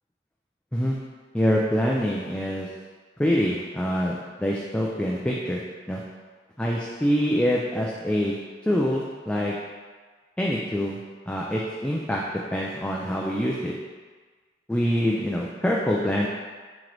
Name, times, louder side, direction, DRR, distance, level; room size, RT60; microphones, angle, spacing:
voice 1, 1.3-2.7 3.2-5.6 5.9-6.0 6.6-8.4 8.7-9.5 10.4-11.0 11.3-12.2 12.5-13.7 14.7-16.3, equal, 5° left, -4 dB, 0.3 m, -25 dB
4.6 x 3.0 x 3.8 m, 1.4 s
head